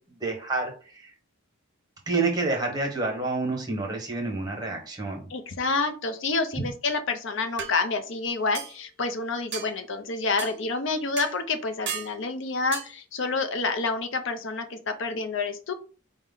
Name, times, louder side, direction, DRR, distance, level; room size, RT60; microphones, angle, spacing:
voice 1, 0.2-1.1 2.1-5.3 6.6-6.7, right 3 dB, 20° right, 1 dB, 1.0 m, -28 dB
voice 2, 5.3-15.7, left 3 dB, 55° left, 8 dB, 0.6 m, -28 dB
sound 1, 6.9-7.0 7.6-7.7 8.5-8.8 9.5-9.7 10.4-10.6 11.2-11.4 11.9-12.1 12.7-12.9, right 7 dB, 50° right, 0.6 m, -34 dB
4.4 x 2.1 x 3.7 m, 0.38 s
head